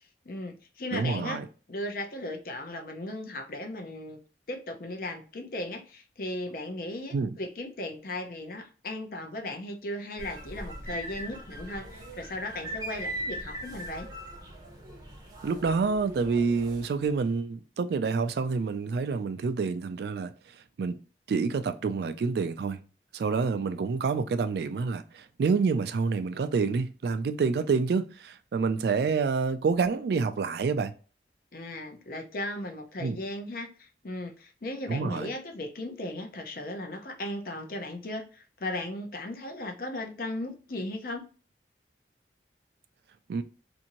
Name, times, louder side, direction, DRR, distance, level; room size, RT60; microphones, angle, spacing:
voice 1, 0.2-1.4 1.7-4.2 4.5-14.1 31.5-41.2, left 1 dB, 50° left, 0.6 m, -37 dB
voice 2, 0.9-1.5 7.1-7.4 15.4-20.3 20.8-21.0 21.3-22.8 23.1-30.9 33.0-33.2 34.9-35.3 43.3-43.4, right 4 dB, 65° right, 0.3 m, -28 dB
sound 1, 10.2-16.9, right 1 dB, 20° right, 0.6 m, -40 dB
2.6 x 2.6 x 2.8 m
head